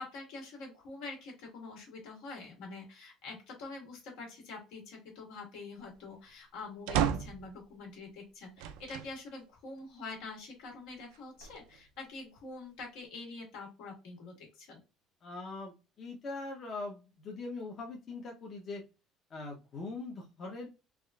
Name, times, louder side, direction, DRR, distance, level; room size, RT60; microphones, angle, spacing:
voice 1, 0.0-14.8, left 3 dB, 80° left, 0 dB, 1.6 m, -46 dB
sound 1, 6.9-7.5 8.6-9.1 9.8-9.9 11.1-11.9, right 9 dB, 90° right, 0.3 m, -33 dB
voice 2, 15.2-18.8 19.3-20.7, left 3 dB, 35° left, 0 dB, 0.6 m, -41 dB
3.5 x 2.4 x 2.2 m, 0.31 s
cardioid pair, 160°, 0 cm